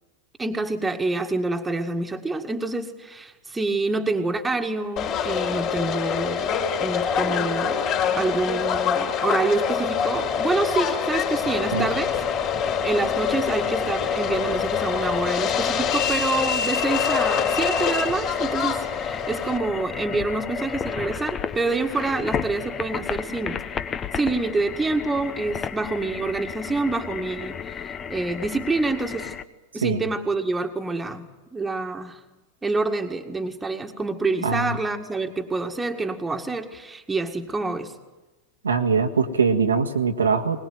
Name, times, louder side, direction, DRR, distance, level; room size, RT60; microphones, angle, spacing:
voice 1, 0.4-6.5 6.8-7.8 8.1-12.2 12.8-23.6 24.1-29.4 29.7-32.2 32.6-37.9, right 3 dB, 10° right, 4 dB, 2.0 m, -27 dB
Subway metro underground, 5.0-19.6, left 7 dB, 40° left, 3.9 m, -25 dB
sound 1, 11.4-29.4, left 6 dB, 25° left, 1.1 m, -33 dB
voice 2, 34.4-34.8 38.6-40.7, right 5 dB, 75° right, 4 dB, 1.7 m, -22 dB
22.0 x 20.0 x 9.5 m, 1.1 s
figure-of-eight pair, 90°, 0 cm